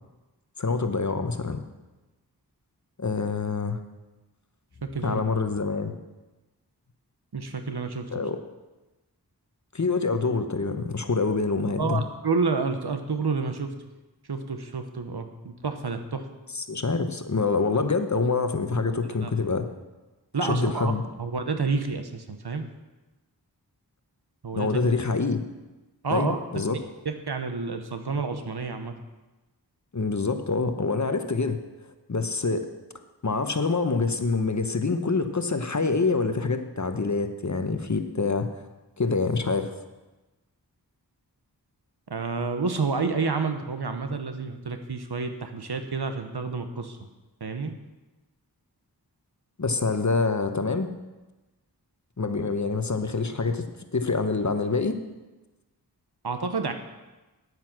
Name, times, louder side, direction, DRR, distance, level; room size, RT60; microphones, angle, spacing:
voice 1, 0.6-1.6 3.0-3.8 5.0-6.0 8.1-8.4 9.7-12.0 16.5-19.7 20.4-21.0 24.5-25.4 26.1-26.8 29.9-31.6 32.1-32.6 33.2-38.6 39.0-39.7 49.6-50.9 52.2-55.0, left 4 dB, 45° left, 8 dB, 1.0 m, -26 dB
voice 2, 4.8-5.2 7.3-8.1 11.8-13.7 14.3-16.2 19.2-19.3 20.3-20.9 21.2-22.7 24.4-24.7 26.0-26.4 27.0-28.9 42.1-47.0 47.4-47.7 56.2-56.7, right 4 dB, 75° right, 7 dB, 1.1 m, -29 dB
9.8 x 9.0 x 6.1 m, 1.1 s
wide cardioid pair, 45°, 39 cm